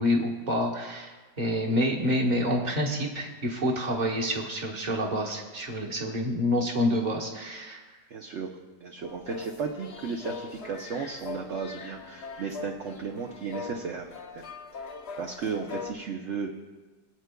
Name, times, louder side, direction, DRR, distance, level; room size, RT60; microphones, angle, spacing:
voice 1, 0.0-7.8, left 1 dB, 30° right, 0 dB, 1.3 m, -28 dB
voice 2, 8.1-8.5 8.8-14.4 14.7-16.6, right 5 dB, 55° right, 2 dB, 0.8 m, -35 dB
sound 1, 9.0-15.9, left 4 dB, 55° left, 0.7 m, -41 dB
24.0 x 8.0 x 2.2 m, 1.3 s
omnidirectional pair, 1.8 m